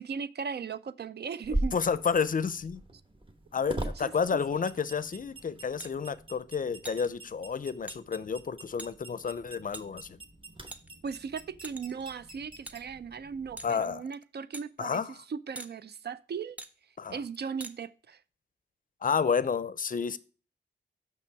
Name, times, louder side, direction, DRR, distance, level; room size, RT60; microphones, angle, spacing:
voice 1, 0.0-1.8 4.0-4.1 11.0-15.0 15.3-16.6 17.1-18.2, right 6 dB, 60° right, 0.4 m, -37 dB
sound 1, 1.4-13.7, right 1 dB, 25° right, 1.1 m, -41 dB
voice 2, 1.7-2.8 3.5-10.2 13.6-14.0 14.8-15.2 17.0-17.2 19.0-20.2, left 6 dB, 45° left, 0.5 m, -30 dB
sound 2, 5.8-5.9 6.8-7.1 7.9-8.0 8.8-8.9 9.7-9.9 10.7-11.1 11.6-12.0 12.7-12.8 13.6-13.8 14.5-14.7 15.6-15.7 16.6-16.7 17.6-17.7, right 1 dB, 10° right, 0.6 m, -42 dB
6.1 x 5.9 x 4.5 m
wide cardioid pair, 105°, 19 cm